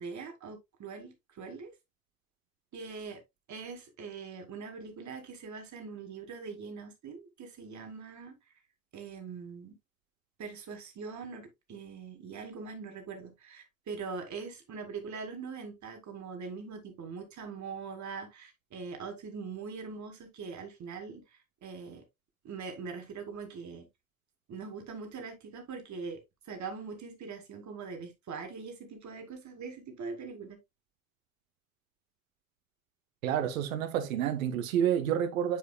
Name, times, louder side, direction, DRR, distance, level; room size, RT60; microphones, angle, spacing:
voice 1, 0.0-1.7 2.7-3.2 3.5-8.4 8.9-9.8 10.4-21.2 21.6-22.0 22.4-23.9 24.5-26.2 26.5-30.6, right 5 dB, 45° right, 2.2 m, -42 dB
voice 2, 33.2-35.6, right 9 dB, 75° right, 0.7 m, -29 dB
8.9 x 4.7 x 2.2 m
figure-of-eight pair, 55°, 40 cm